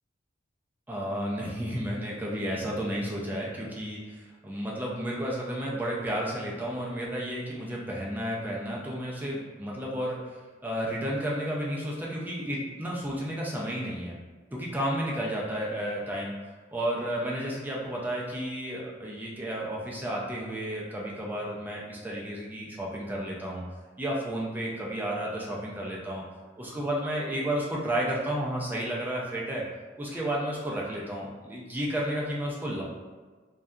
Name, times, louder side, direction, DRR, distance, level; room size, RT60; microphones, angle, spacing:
voice 1, 0.9-10.2 10.6-14.2 14.5-16.3 16.7-23.6 24.0-26.2 26.6-29.6 30.0-32.8, right 1 dB, 10° right, -4 dB, 0.4 m, -32 dB
2.6 x 2.2 x 2.3 m, 1.4 s
head